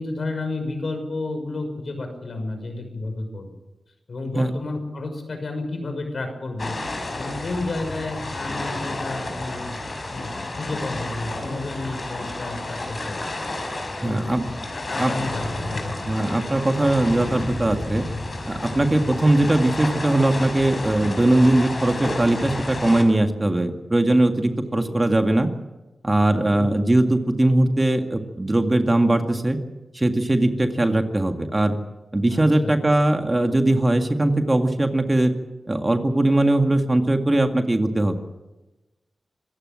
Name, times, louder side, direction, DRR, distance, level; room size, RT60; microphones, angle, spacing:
voice 1, 0.0-3.5 4.1-6.8 7.1-9.8 10.1-13.2 14.0-14.4 14.7-16.0 24.7-24.9 26.5-26.7 32.3-32.7, left 2 dB, 65° left, 6 dB, 6.0 m, -31 dB
sound 1, 6.6-23.0, left 2 dB, 45° left, 5.1 m, -31 dB
voice 2, 14.0-14.4 15.0-15.1 16.0-18.0 18.5-25.5 26.0-29.6 29.9-31.8 32.1-35.3 35.7-38.2, right 1 dB, 25° right, 5 dB, 2.0 m, -20 dB
26.0 x 15.0 x 7.7 m, 1.1 s
cardioid pair, 65°, 0 cm